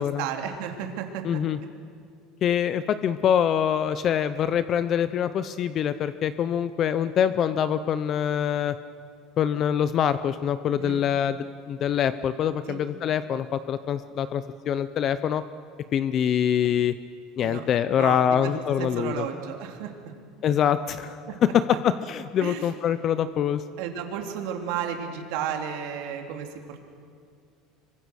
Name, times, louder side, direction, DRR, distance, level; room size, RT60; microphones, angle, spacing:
voice 1, 0.0-1.4 10.8-11.0 12.7-12.8 17.4-19.9 21.3-21.5 22.4-22.7 23.8-26.8, right 8 dB, 75° right, 4 dB, 3.0 m, -33 dB
voice 2, 1.2-1.6 2.4-8.8 9.4-11.4 11.7-15.4 15.9-16.9 17.4-19.3 20.4-21.2 21.8-23.6, left 9 dB, 40° left, 13 dB, 0.6 m, -25 dB
25.5 x 23.5 x 6.4 m, 2.2 s
cardioid pair, 140°, 0 cm